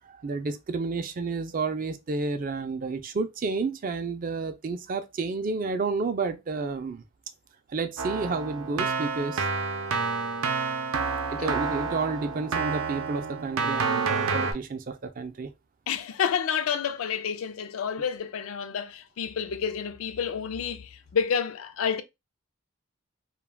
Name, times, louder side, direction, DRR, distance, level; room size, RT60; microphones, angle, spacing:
voice 1, 0.1-7.0 7.7-9.5 11.3-15.5, right 4 dB, 40° right, 0.3 m, -30 dB
Keyboard (musical), 8.0-14.5, right 5 dB, 90° right, 0.6 m, -29 dB
voice 2, 15.9-22.0, left 7 dB, 80° left, 0.4 m, -29 dB
2.3 x 2.2 x 3.3 m
head